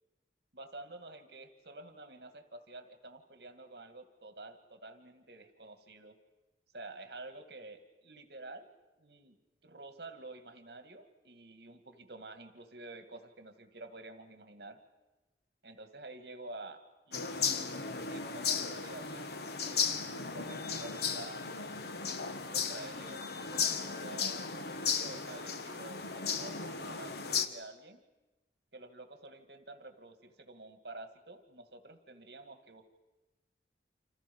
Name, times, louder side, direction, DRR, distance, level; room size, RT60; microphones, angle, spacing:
voice 1, 0.5-6.2 6.7-8.7 9.0-9.4 9.6-14.8 15.6-17.3 18.1-19.3 19.6-21.5 22.5-28.0 28.7-32.9, right 2 dB, 65° right, 7 dB, 2.2 m, -49 dB
sound 1, 17.1-27.5, left 6 dB, 60° left, 1.3 m, -35 dB
29.0 x 27.0 x 5.5 m, 1.1 s
head